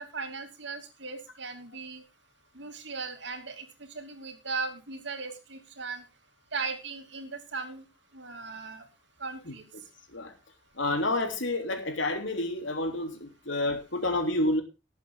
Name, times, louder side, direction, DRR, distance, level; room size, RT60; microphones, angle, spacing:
voice 1, 0.0-2.0 2.5-6.0 6.5-7.8 8.1-8.8 9.2-9.7, right 4 dB, 60° right, 6 dB, 2.7 m, -38 dB
voice 2, 10.8-14.6, left 2 dB, 70° left, 6 dB, 3.2 m, -29 dB
19.0 x 8.2 x 3.7 m, 0.28 s
head